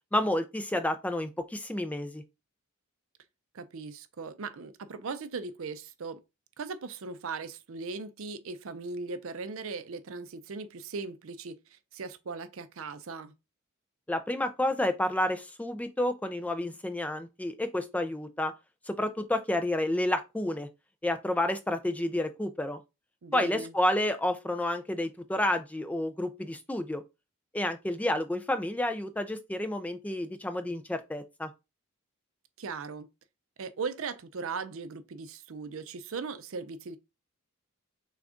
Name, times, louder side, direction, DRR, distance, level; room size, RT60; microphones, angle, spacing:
voice 1, 0.1-2.2 14.1-18.5 18.9-20.7 21.0-22.8 23.3-27.0 27.5-31.5, left 1 dB, 5° left, 0.3 m, -30 dB
voice 2, 3.5-6.2 6.6-13.3 23.2-23.7 32.6-33.1 33.6-37.0, right 4 dB, 60° right, 0.5 m, -38 dB
6.0 x 2.3 x 3.7 m
head